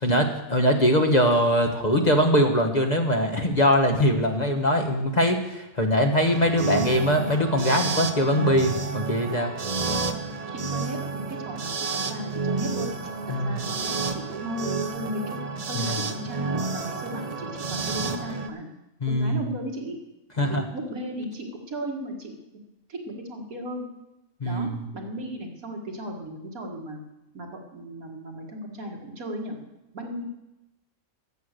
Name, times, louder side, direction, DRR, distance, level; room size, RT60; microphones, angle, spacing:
voice 1, 0.0-9.5 13.3-13.6 15.7-16.0 19.0-19.5 20.4-20.6 24.4-24.9, equal, 30° left, 4 dB, 1.2 m, -22 dB
sound 1, 6.3-18.5, right 4 dB, 35° right, 0.7 m, -30 dB
voice 2, 10.5-12.9 13.4-13.8 14.1-15.4 15.7-18.7 19.1-20.0 20.4-22.3 22.9-23.9 24.4-27.0 27.3-29.6 29.9-30.2, equal, 85° right, 1 dB, 2.3 m, -35 dB
13.5 x 7.9 x 6.6 m, 0.94 s
omnidirectional pair, 1.5 m